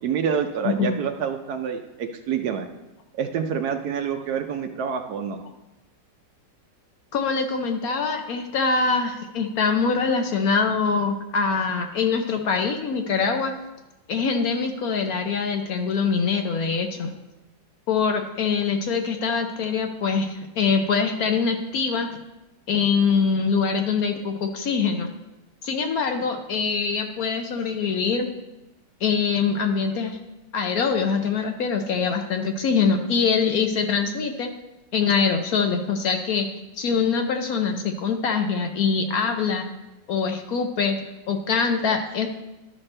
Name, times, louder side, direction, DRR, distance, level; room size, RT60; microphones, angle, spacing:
voice 1, 0.0-2.7 3.1-5.4, right 7 dB, 70° right, 6 dB, 1.0 m, -27 dB
voice 2, 7.1-13.5 14.1-17.1 17.9-22.1 22.7-25.1 25.6-28.3 29.0-30.2 30.5-34.5 34.9-36.5 36.8-39.7 40.1-41.0 41.3-42.3, left 5 dB, 65° left, 5 dB, 1.0 m, -23 dB
12.5 x 5.8 x 3.2 m, 0.99 s
omnidirectional pair, 1.9 m